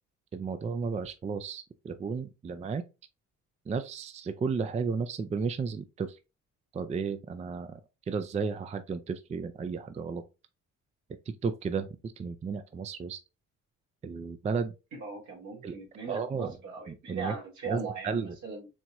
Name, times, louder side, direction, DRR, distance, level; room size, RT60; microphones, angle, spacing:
voice 1, 0.3-2.8 3.7-6.2 6.7-7.8 8.1-10.2 11.3-13.2 14.0-14.7 15.6-15.7 16.1-16.6 16.9-17.4 17.7-18.4, right 5 dB, 25° right, 0.4 m, -33 dB
voice 2, 14.9-18.7, right 5 dB, 75° right, 1.9 m, -39 dB
4.3 x 2.9 x 2.3 m
cardioid pair, 90°, 30 cm